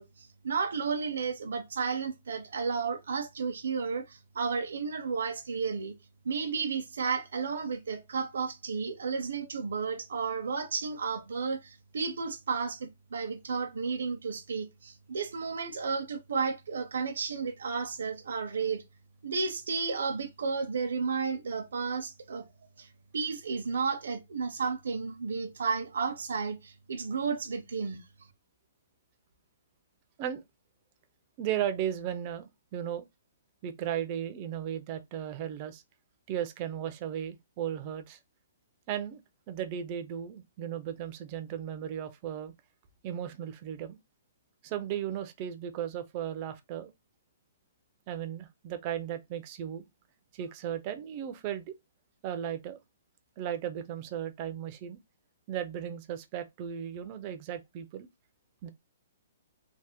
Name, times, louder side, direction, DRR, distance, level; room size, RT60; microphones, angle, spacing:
voice 1, 0.0-5.9 6.2-18.8 19.2-22.5 22.8-22.9 23.1-28.0, right 5 dB, 70° right, 0.6 m, -32 dB
voice 2, 31.4-33.1 33.6-35.8 36.3-38.2 38.9-39.2 39.5-42.5 43.0-44.0 44.6-46.9 48.1-49.8 50.3-51.8 52.2-52.8 53.4-55.0 55.5-58.1 58.6-58.7, right 10 dB, 20° right, 0.3 m, -36 dB
3.2 x 2.1 x 2.8 m
hypercardioid pair, 180°, 0 cm